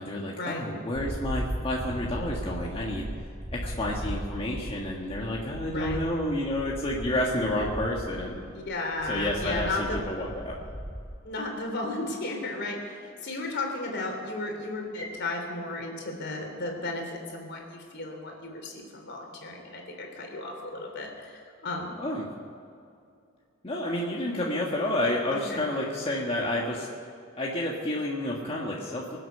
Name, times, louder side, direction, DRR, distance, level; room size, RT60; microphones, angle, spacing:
voice 1, 0.0-3.0 3.5-8.4 9.1-10.5 22.0-22.3 23.6-26.9 27.4-29.2, left 1 dB, 30° left, -3 dB, 1.6 m, -30 dB
sound 1, 0.9-11.2, equal, 10° right, 1.1 m, -37 dB
voice 2, 5.6-6.0 8.5-10.0 11.2-21.9 25.3-25.6, left 2 dB, 60° left, 2 dB, 3.4 m, -34 dB
24.5 x 8.2 x 6.8 m, 2.4 s
head